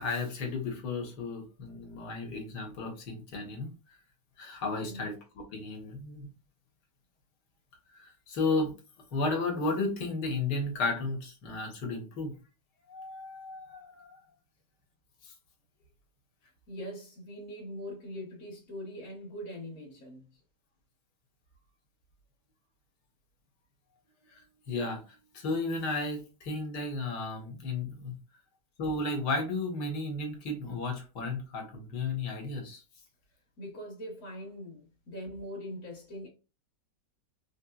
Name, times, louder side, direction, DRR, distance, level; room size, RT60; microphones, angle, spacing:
voice 1, 0.0-3.7 4.4-6.3 7.9-8.7 9.1-12.3 12.9-14.2 15.2-15.3 24.3-28.2 28.8-32.8, left 3 dB, 85° left, 1.7 m, -34 dB
voice 2, 16.7-20.4 33.6-36.3, equal, 55° left, 1.4 m, -42 dB
4.7 x 2.8 x 2.3 m
omnidirectional pair, 1.8 m